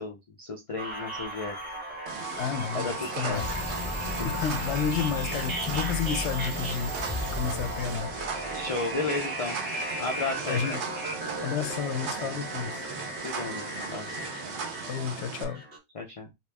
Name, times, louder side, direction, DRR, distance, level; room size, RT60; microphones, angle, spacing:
voice 1, 0.0-1.5 2.7-2.9 3.2-3.4 4.2-4.3 8.5-9.6 10.0-10.8 13.2-14.1 15.9-16.3, left 3 dB, 40° left, 0.5 m, -33 dB
sound 1, 0.8-15.8, right 1 dB, 45° right, 1.5 m, -36 dB
sound 2, 2.1-15.4, right 5 dB, 75° right, 1.0 m, -38 dB
voice 2, 2.4-3.5 4.2-8.5 10.5-10.8 11.4-12.9 14.8-15.7, left 7 dB, 80° left, 0.9 m, -31 dB
sound 3, 3.3-8.7, left 1 dB, 15° right, 1.4 m, -35 dB
3.0 x 2.8 x 3.3 m
omnidirectional pair, 1.2 m